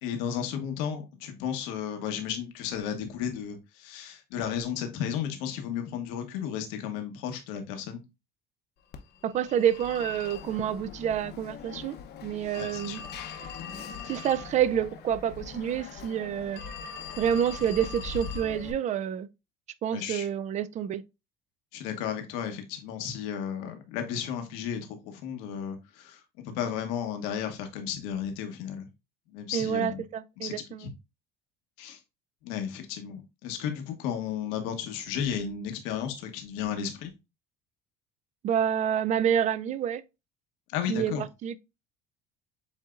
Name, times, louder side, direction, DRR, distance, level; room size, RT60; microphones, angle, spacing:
voice 1, 0.0-8.0 12.5-13.1 19.9-20.3 21.7-28.9 29.3-30.0 30.4-30.9 31.8-32.0 32.4-37.1 40.7-41.2, left 8 dB, 85° left, 1.1 m, -34 dB
Telephone, 8.9-18.7, left 6 dB, 50° left, 0.7 m, -41 dB
voice 2, 9.2-12.0 12.2-13.0 14.1-16.6 17.2-19.3 19.8-21.0 29.5-30.9 38.4-40.0 40.9-41.6, right 9 dB, 35° right, 0.3 m, -28 dB
7.2 x 2.8 x 2.4 m
cardioid pair, 110°, 21 cm